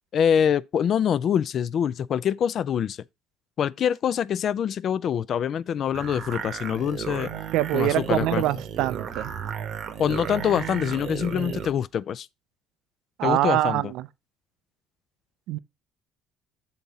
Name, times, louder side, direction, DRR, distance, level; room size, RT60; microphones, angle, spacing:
voice 1, 0.1-3.0 3.6-7.3 7.7-8.4 10.0-12.3 13.2-13.9, left 8 dB, 50° left, 0.3 m, -25 dB
sound 1, 5.9-11.7, right 8 dB, 55° right, 0.8 m, -34 dB
voice 2, 7.5-9.3 13.2-14.1 15.5-15.6, right 15 dB, 75° right, 0.3 m, -24 dB
7.1 x 3.9 x 4.0 m
cardioid pair, 100°, 0 cm